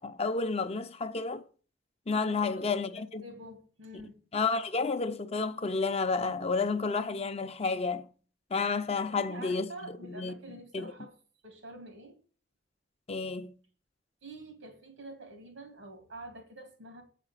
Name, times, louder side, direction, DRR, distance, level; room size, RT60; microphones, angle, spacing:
voice 1, 0.0-1.4 2.1-3.2 4.3-8.1 8.5-10.3 10.7-10.9 13.1-13.5, left 4 dB, 35° left, 0.6 m, -31 dB
voice 2, 2.2-4.2 9.0-11.1 11.4-12.2 14.2-17.0, right 2 dB, 85° right, 2.5 m, -47 dB
8.5 x 5.0 x 7.3 m
head